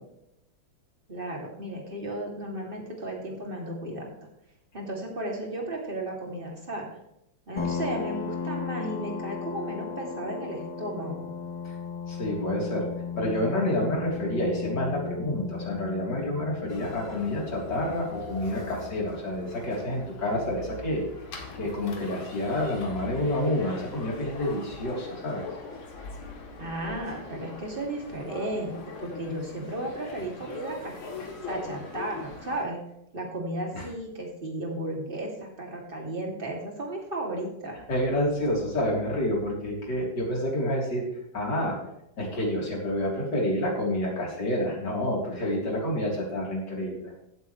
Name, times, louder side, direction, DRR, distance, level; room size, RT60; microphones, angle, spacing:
voice 1, 1.1-4.1 4.7-6.9 7.5-11.3 26.6-30.9 31.4-32.8 33.1-37.8, right 1 dB, 25° right, 0 dB, 2.8 m, -34 dB
sound 1, 7.6-20.8, left 6 dB, 25° left, 0.6 m, -36 dB
voice 2, 12.1-12.9 13.2-21.0 21.3-25.5 33.7-33.9 37.9-41.1 41.3-41.8 42.2-47.1, left 1 dB, 55° left, -2 dB, 4.0 m, -28 dB
sound 2, 16.7-32.6, left 3 dB, 85° left, 2.6 m, -42 dB
16.5 x 8.0 x 3.2 m, 0.82 s
omnidirectional pair, 2.2 m